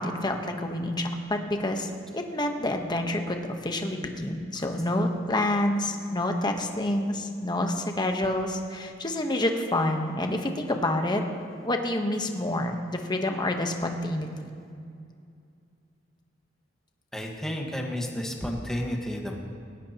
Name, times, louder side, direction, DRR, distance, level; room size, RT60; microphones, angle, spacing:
voice 1, 0.0-11.2 11.6-14.5, left 1 dB, 25° left, 4 dB, 1.1 m, -28 dB
voice 2, 17.1-19.4, equal, 5° left, 0 dB, 1.5 m, -31 dB
20.0 x 17.0 x 3.0 m, 2.4 s
head